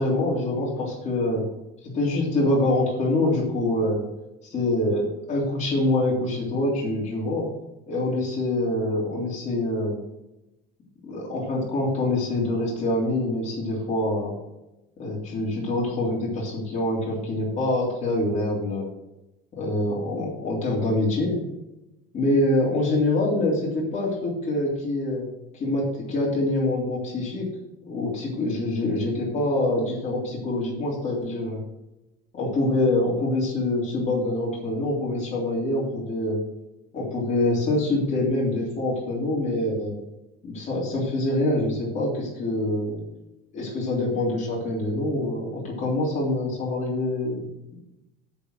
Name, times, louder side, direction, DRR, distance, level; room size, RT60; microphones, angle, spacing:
voice 1, 0.0-1.5 1.8-4.0 4.5-7.5 7.9-10.0 11.0-14.3 15.0-18.9 19.6-21.4 22.1-25.3 25.5-27.5 27.8-31.6 32.3-36.4 36.9-39.9 40.4-43.0 43.5-47.4, left 2 dB, 30° left, -5 dB, 3.3 m, -25 dB
7.6 x 7.3 x 6.5 m, 0.93 s
cardioid pair, 155°, 21 cm